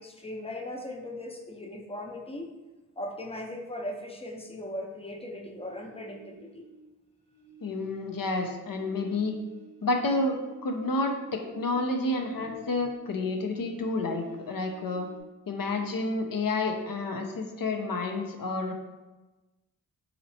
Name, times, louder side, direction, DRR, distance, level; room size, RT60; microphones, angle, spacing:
voice 1, 0.0-2.5 3.0-6.6, left 1 dB, 15° left, 2 dB, 0.5 m, -38 dB
sound 1, 5.6-6.9 7.2-13.3 13.6-15.2, right 2 dB, 90° left, 1.0 m, -53 dB
voice 2, 7.6-9.4 9.8-10.4 10.6-15.1 15.5-18.7, left 2 dB, 65° left, 3 dB, 0.6 m, -30 dB
4.0 x 2.9 x 2.7 m, 1.1 s
cardioid pair, 55°, 36 cm